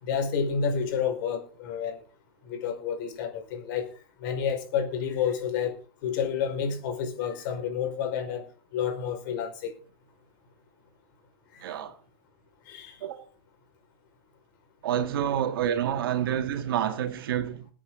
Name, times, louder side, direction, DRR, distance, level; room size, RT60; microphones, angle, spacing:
voice 1, 0.0-2.0 2.4-3.9 4.2-5.7 6.0-8.4 8.7-9.7 11.5-11.7 12.7-13.0, left 7 dB, 60° left, 5.1 m, -29 dB
voice 2, 11.6-12.0 13.0-13.3 14.8-17.7, right 10 dB, 80° right, 2.0 m, -28 dB
21.5 x 8.6 x 3.9 m
supercardioid pair, 145°, 12 cm